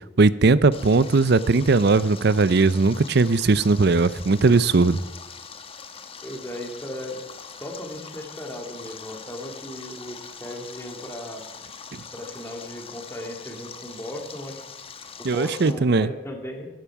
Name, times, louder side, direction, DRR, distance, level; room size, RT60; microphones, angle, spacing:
voice 1, 0.2-5.0 15.2-16.1, right 3 dB, 65° right, 16 dB, 0.6 m, -19 dB
Stream, 0.7-15.7, left 6 dB, 35° left, 1.1 m, -42 dB
voice 2, 6.2-7.2 7.6-11.4 12.1-14.6 15.2-16.7, left 1 dB, 15° left, 2 dB, 2.5 m, -36 dB
16.0 x 14.5 x 4.8 m, 1.0 s
head